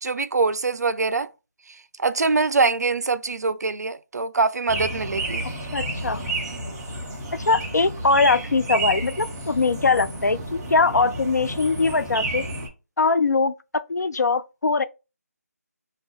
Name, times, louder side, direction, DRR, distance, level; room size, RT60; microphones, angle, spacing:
voice 1, 0.0-1.3 2.0-5.4, right 4 dB, 75° right, 0.4 m, -23 dB
sound 1, 4.7-12.7, right 2 dB, 5° right, 0.3 m, -31 dB
voice 2, 5.7-6.3 7.3-12.4 13.0-13.5 13.9-14.8, left 3 dB, 90° left, 0.4 m, -21 dB
3.4 x 2.2 x 3.4 m
figure-of-eight pair, 165°, 9 cm